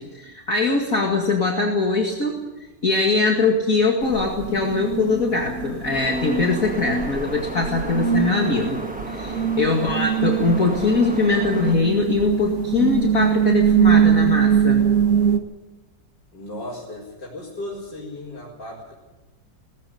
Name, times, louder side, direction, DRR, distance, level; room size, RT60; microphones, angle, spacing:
voice 1, 0.0-2.5 2.8-8.8 9.1-14.9, left 3 dB, 50° left, 0 dB, 2.6 m, -22 dB
sound 1, 4.0-15.4, right 8 dB, 50° right, 1.9 m, -22 dB
sound 2, 5.9-11.7, equal, 5° right, 1.2 m, -34 dB
voice 2, 16.3-18.9, left 1 dB, 80° left, -6 dB, 5.3 m, -36 dB
19.0 x 15.5 x 10.0 m, 1.1 s
omnidirectional pair, 1.9 m